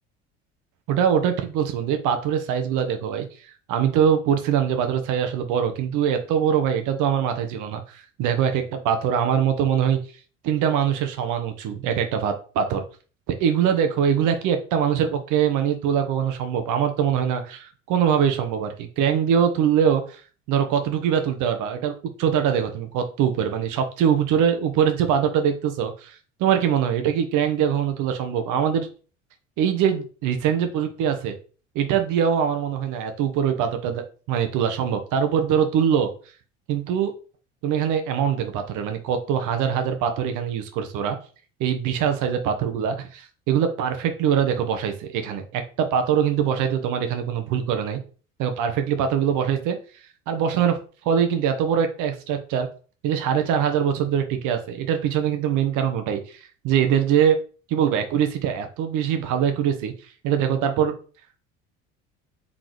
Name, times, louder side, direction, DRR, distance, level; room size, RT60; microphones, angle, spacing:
voice 1, 0.9-10.0 10.4-12.8 13.3-20.2 20.5-21.9 22.2-28.9 29.6-31.3 31.7-34.0 34.3-36.1 36.7-37.1 37.6-41.2 41.6-48.0 48.4-49.8 50.3-50.8 51.0-52.7 53.0-57.4 57.7-59.9 60.2-60.9, right 8 dB, 50° right, 6 dB, 1.0 m, -23 dB
4.0 x 3.8 x 3.1 m, 0.38 s
figure-of-eight pair, 65°, 38 cm